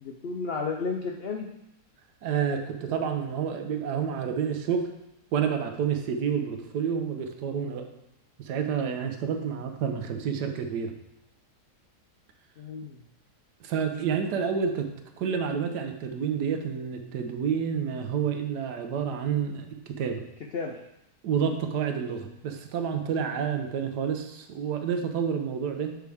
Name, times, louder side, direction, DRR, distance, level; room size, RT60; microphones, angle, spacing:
voice 1, 0.0-1.5 12.6-13.0 20.5-20.8, left 4 dB, 75° left, 2 dB, 0.5 m, -32 dB
voice 2, 2.2-4.9 5.3-7.9 8.4-10.9 13.6-14.9 15.2-20.2 21.2-26.0, right 7 dB, 90° right, 6 dB, 1.3 m, -29 dB
8.1 x 4.8 x 3.4 m, 0.86 s
omnidirectional pair, 1.7 m